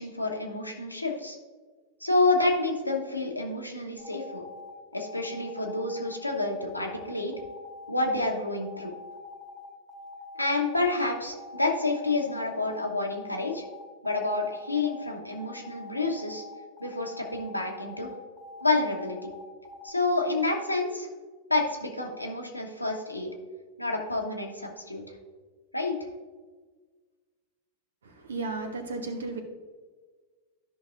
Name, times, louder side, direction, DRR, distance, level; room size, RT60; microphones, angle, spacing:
voice 1, 0.0-1.4 2.0-4.4 4.9-7.3 7.9-8.9 10.4-13.6 14.0-16.4 16.8-18.1 18.6-19.3 19.8-21.1 21.5-23.3 23.8-25.0 25.7-26.1, left 2 dB, 85° left, 1 dB, 1.2 m, -29 dB
sound 1, 4.0-19.9, left 3 dB, 5° right, 1.5 m, -45 dB
voice 2, 28.0-29.4, right 3 dB, 70° right, 6 dB, 1.1 m, -34 dB
13.0 x 5.8 x 2.5 m, 1.4 s
figure-of-eight pair, 90°, 0 cm